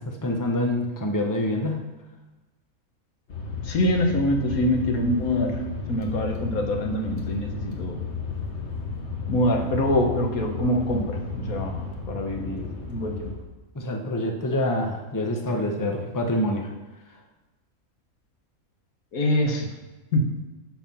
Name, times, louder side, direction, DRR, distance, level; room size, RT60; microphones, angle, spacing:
voice 1, 0.0-1.9 13.7-16.7, left 1 dB, 15° left, 3 dB, 0.9 m, -26 dB
sound 1, 3.3-13.4, left 4 dB, 55° left, 1.7 m, -33 dB
voice 2, 3.6-8.1 9.3-13.3 19.1-19.7 20.1-20.4, left 1 dB, 85° left, 3 dB, 1.7 m, -25 dB
13.0 x 4.6 x 5.5 m, 1.1 s
omnidirectional pair, 1.4 m